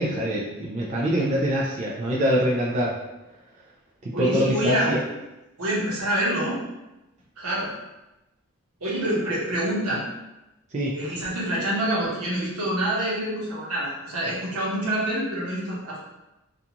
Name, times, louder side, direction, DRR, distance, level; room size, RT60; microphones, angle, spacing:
voice 1, 0.0-2.9 4.0-5.0 10.7-11.0, equal, 30° right, -5 dB, 0.3 m, -24 dB
voice 2, 4.1-5.0 5.6-6.6 7.4-7.7 8.8-10.0 10.9-16.0, right 1 dB, 75° right, -6 dB, 0.9 m, -26 dB
2.5 x 2.3 x 2.8 m, 0.98 s
head